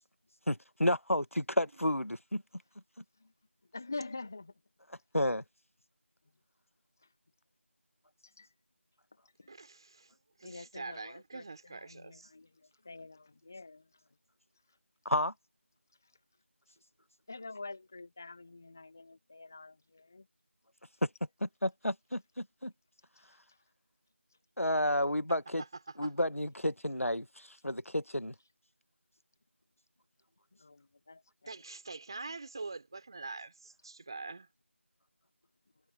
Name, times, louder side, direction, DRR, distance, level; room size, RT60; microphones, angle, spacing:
voice 1, 0.5-2.4 5.1-5.4 15.0-15.3 21.0-21.1 21.4-22.7 24.6-25.6 26.0-28.3, left 1 dB, 90° left, 1.3 m, -31 dB
voice 2, 3.7-4.5 8.2-8.5 9.4-9.5 10.4-11.4 11.9-12.5 12.9-13.8 17.3-20.2 30.6-30.8 31.1-31.2, left 3 dB, 15° left, 0.8 m, -45 dB
voice 3, 9.5-10.1 10.4-12.3 25.6-26.1 31.5-34.5, right 3 dB, 20° right, 4.2 m, -44 dB
figure-of-eight pair, 170°, 7 cm